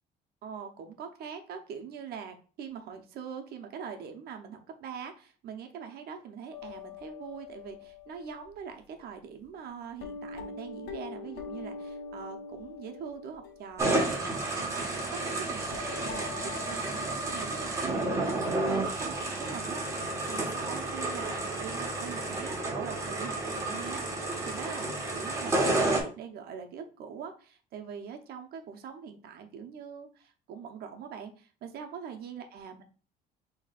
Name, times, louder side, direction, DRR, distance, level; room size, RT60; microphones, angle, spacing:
voice 1, 0.4-16.3 16.6-32.9, right 7 dB, 70° right, 4 dB, 0.9 m, -43 dB
sound 1, 6.5-8.6 9.4-9.5 10.0-14.3 15.0-15.1 15.6-18.6 18.8-18.9 19.5-19.6, left 5 dB, 75° left, 0.8 m, -44 dB
sound 2, 13.8-26.0, right 2 dB, 15° right, 1.4 m, -31 dB
6.4 x 3.1 x 2.5 m, 0.38 s
cardioid pair, 110°, 17 cm